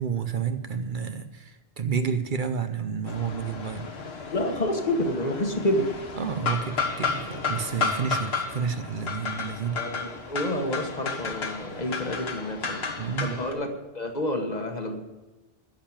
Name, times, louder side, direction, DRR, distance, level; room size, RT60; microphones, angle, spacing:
voice 1, 0.0-4.1 6.2-9.8 13.0-13.4, right 6 dB, 55° right, 9 dB, 0.8 m, -30 dB
sound 1, 3.1-13.5, left 5 dB, 80° left, 1.6 m, -32 dB
voice 2, 4.3-6.0 9.7-12.9 13.2-15.0, left 1 dB, 45° left, 5 dB, 1.4 m, -29 dB
10.5 x 7.3 x 8.7 m, 1.2 s
omnidirectional pair, 1.0 m